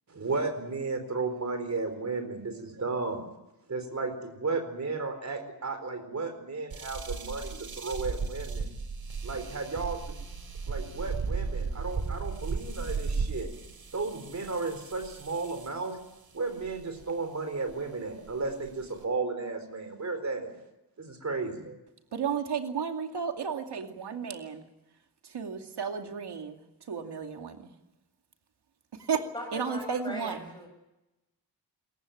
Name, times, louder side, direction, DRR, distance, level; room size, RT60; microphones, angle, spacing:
voice 1, 0.1-3.3 3.7-8.7 9.2-10.0 10.7-13.5 13.9-16.0 16.3-20.6 21.0-21.8, right 3 dB, 45° right, 8 dB, 4.2 m, -34 dB
sound 1, 6.7-15.9 16.6-17.0 17.7-17.8 18.3-19.0, right 4 dB, 60° right, 3.1 m, -35 dB
voice 2, 22.1-24.6 25.3-26.6 26.9-27.7 28.9-29.2 29.5-30.5, right 6 dB, 80° right, 5 dB, 2.4 m, -33 dB
voice 3, 29.3-30.7, equal, 10° left, -1 dB, 6.0 m, -39 dB
27.0 x 15.0 x 9.3 m, 0.95 s
wide cardioid pair, 160°, 40 cm